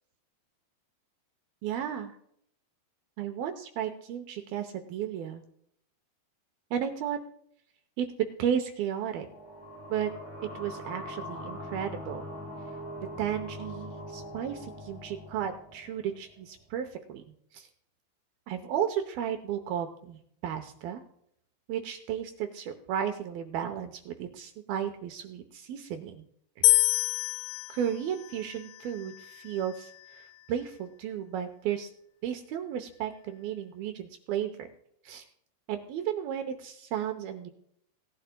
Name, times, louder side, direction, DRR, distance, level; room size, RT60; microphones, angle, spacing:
voice 1, 1.6-2.2 3.2-5.4 6.7-7.2 8.0-8.1 8.4-9.3 9.9-10.1 10.5-12.2 13.2-17.2 17.5-17.7 18.5-21.0 21.7-26.2 26.6-26.7 27.7-31.9 32.2-34.7 35.1-35.3 35.7-37.5, right 9 dB, 75° right, 7 dB, 2.4 m, -34 dB
sound 1, 9.0-16.4, left 1 dB, 5° right, 3.2 m, -42 dB
sound 2, 26.6-29.9, left 17 dB, 80° left, 2.5 m, -28 dB
18.5 x 11.0 x 2.2 m, 0.69 s
omnidirectional pair, 4.9 m